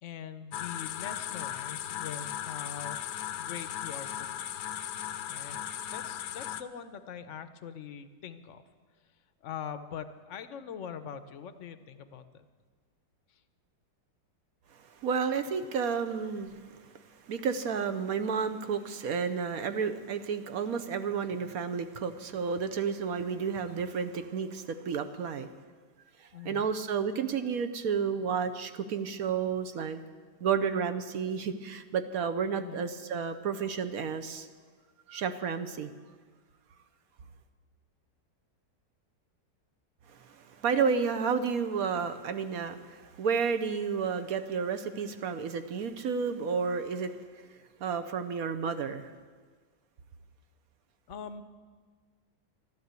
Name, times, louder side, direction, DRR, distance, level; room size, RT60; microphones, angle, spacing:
voice 1, 0.0-3.0 3.4-4.5 5.3-5.6 5.9-8.6 9.4-12.4 26.3-26.7 32.6-32.8 51.1-51.4, left 8 dB, 55° left, 10 dB, 0.9 m, -42 dB
sound 1, 0.5-6.6, left 11 dB, 70° left, 1.2 m, -37 dB
voice 2, 14.8-16.8 17.3-25.5 26.2-30.0 30.4-34.5 35.1-35.9 40.1-47.5 47.8-49.1, right 6 dB, 60° right, 9 dB, 1.0 m, -31 dB
12.5 x 12.5 x 8.1 m, 1.5 s
omnidirectional pair, 1.9 m